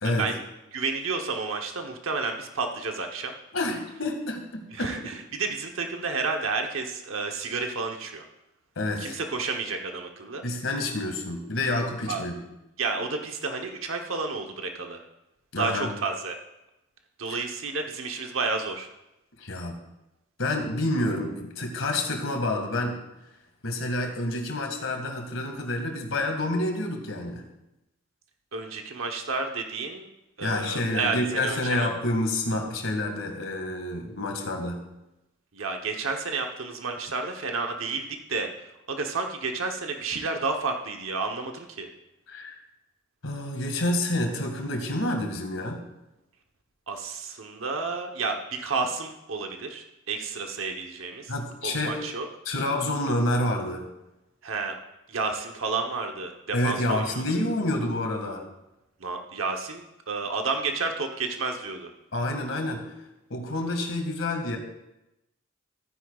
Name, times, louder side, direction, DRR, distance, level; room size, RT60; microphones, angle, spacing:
voice 1, 0.7-3.3 4.7-8.2 9.0-10.4 12.1-12.2 12.8-15.0 15.6-16.4 17.2-18.9 28.5-30.1 30.4-31.9 35.5-41.9 46.9-51.3 51.6-52.3 54.4-54.8 55.1-57.2 59.0-61.9, right 4 dB, 90° right, 3 dB, 0.9 m, -31 dB
voice 2, 3.5-4.9 8.8-9.2 10.4-12.3 15.5-15.9 17.2-17.4 19.4-19.8 20.4-23.0 23.6-27.5 30.4-34.8 42.3-42.6 43.2-45.8 51.3-52.0 52.5-53.8 56.5-58.4 62.1-62.8 63.3-64.6, left 1 dB, 80° left, 3 dB, 1.9 m, -28 dB
15.0 x 9.8 x 2.4 m, 0.92 s
head